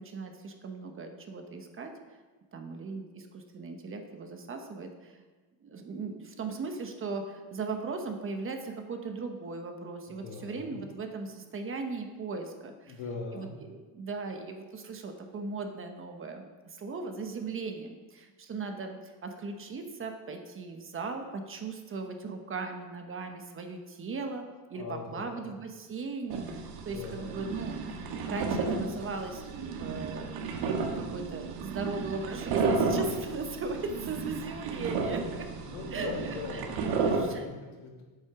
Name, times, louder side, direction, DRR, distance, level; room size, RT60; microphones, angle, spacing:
voice 1, 0.0-1.9 2.5-5.2 5.6-13.0 13.3-24.4 24.7-29.4 29.8-35.5 35.9-37.5, right 4 dB, 30° right, 5 dB, 1.0 m, -38 dB
voice 2, 10.1-10.7 12.9-13.5 24.7-25.4 26.8-27.3 35.6-38.0, left 4 dB, 65° left, -1 dB, 2.9 m, -41 dB
sound 1, 26.3-37.2, right 4 dB, 75° right, 1.8 m, -33 dB
8.5 x 7.8 x 6.0 m, 1.3 s
cardioid pair, 140°, 45 cm